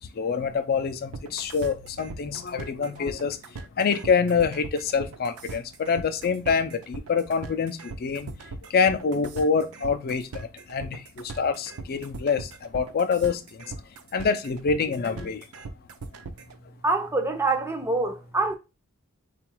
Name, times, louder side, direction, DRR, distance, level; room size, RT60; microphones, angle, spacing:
voice 1, 0.1-13.7 14.1-15.5, left 5 dB, 45° left, 0.4 m, -26 dB
sound 1, 1.1-16.6, right 3 dB, 75° right, 0.6 m, -39 dB
voice 2, 16.8-18.5, right 3 dB, 10° right, 0.4 m, -25 dB
3.9 x 2.4 x 4.4 m
head